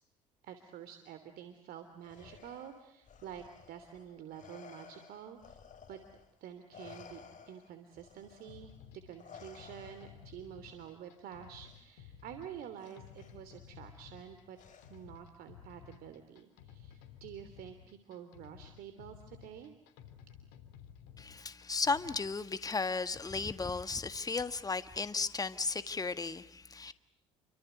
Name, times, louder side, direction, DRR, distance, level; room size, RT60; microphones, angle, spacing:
voice 1, 0.4-5.6 5.9-6.0 6.4-14.6 14.9-19.7, right 9 dB, 65° right, 3.1 m, -49 dB
Respiratory sounds, 2.0-6.4 6.7-10.3 11.6-11.8 12.8-13.3 14.6-15.2, left 7 dB, 50° left, 5.1 m, -55 dB
sound 1, 8.5-22.4, left 9 dB, 80° left, 3.5 m, -55 dB
voice 2, 21.2-26.9, left 4 dB, 20° left, 1.7 m, -35 dB
29.5 x 25.0 x 8.1 m
hypercardioid pair, 65°, 16 cm